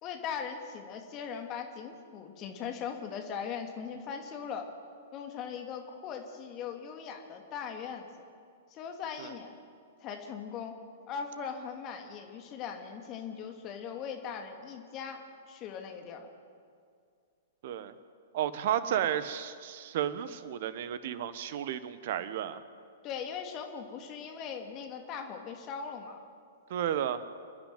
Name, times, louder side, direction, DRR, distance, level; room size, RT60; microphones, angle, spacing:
voice 1, 0.0-4.7 5.1-8.1 8.7-9.5 10.0-10.8 11.1-16.3 23.0-26.2, left 7 dB, 30° left, 4 dB, 2.7 m, -40 dB
voice 2, 17.6-17.9 18.3-22.6 26.7-27.2, right 10 dB, 50° right, 13 dB, 1.2 m, -32 dB
28.5 x 10.5 x 9.4 m, 2.3 s
figure-of-eight pair, 110°, 0 cm